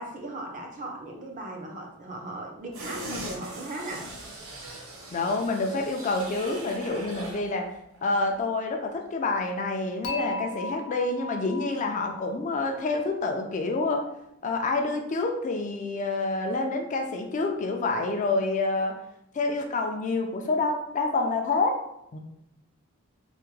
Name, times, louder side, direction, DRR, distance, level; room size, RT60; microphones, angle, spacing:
voice 1, 0.0-4.1 17.9-18.3, right 2 dB, 40° right, 1 dB, 0.6 m, -38 dB
sound 1, 2.7-7.5 7.8-8.0, right 2 dB, 70° right, 0.8 m, -40 dB
voice 2, 5.1-7.7 8.0-14.0 14.4-18.9 19.3-21.8 22.1-22.2, left 3 dB, 35° left, 3 dB, 0.3 m, -27 dB
Dishes pots and pans / Chink clink, 10.0-13.2, left 2 dB, 90° left, 0.6 m, -38 dB
3.3 x 2.1 x 3.1 m, 0.79 s
head